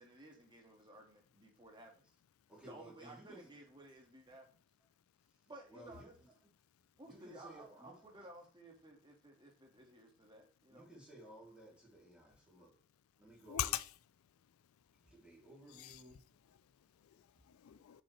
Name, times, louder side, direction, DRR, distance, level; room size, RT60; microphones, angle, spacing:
voice 1, 0.0-2.0 2.6-4.5 5.5-6.1 7.0-10.9, right 1 dB, 25° right, 1.7 m, -56 dB
voice 2, 2.5-3.5 5.2-6.3 7.0-8.3 10.7-12.8 13.2-13.7 14.9-16.3, right 1 dB, 5° right, 2.9 m, -57 dB
voice 3, 13.5-13.9 14.2-15.1 15.7-16.0 16.5-18.0, left 12 dB, 80° left, 0.4 m, -44 dB
7.0 x 5.4 x 3.2 m
head